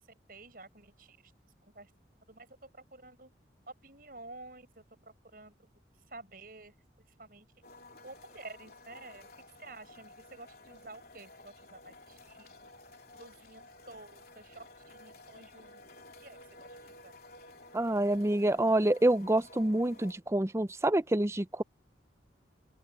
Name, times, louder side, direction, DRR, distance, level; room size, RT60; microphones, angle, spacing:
voice 1, 0.3-1.2 1.8-1.9 2.3-3.3 3.8-4.8 5.3-5.5 6.1-6.7 7.2-7.5 8.0-9.3 9.6-12.7 13.1-15.9 16.2-16.4 16.9-17.1, right 2 dB, 50° right, 7.2 m, -51 dB
sound 1, 7.6-20.1, left 2 dB, 55° left, 3.4 m, -54 dB
voice 2, 17.7-21.6, right 1 dB, 15° right, 0.5 m, -27 dB
open air
head